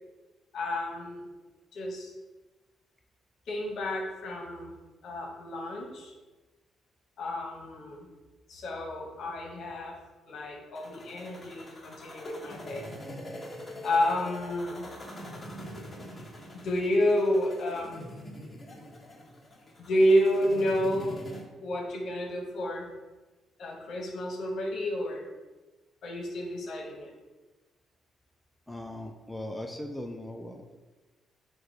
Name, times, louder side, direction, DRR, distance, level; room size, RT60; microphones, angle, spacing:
voice 1, 0.5-1.3 1.7-2.1 3.5-4.7 5.0-6.1 7.2-8.1 8.5-10.0 10.3-12.9 13.8-14.9 16.5-18.1 19.8-21.2 21.6-22.9 23.6-25.2 26.0-27.1, equal, 65° left, 0 dB, 0.9 m, -30 dB
sound 1, 10.8-21.4, left 1 dB, 20° left, 1.2 m, -44 dB
voice 2, 28.7-30.8, left 1 dB, 5° left, 3 dB, 0.4 m, -39 dB
4.9 x 2.2 x 4.7 m, 1.2 s
cardioid pair, 90°, 0 cm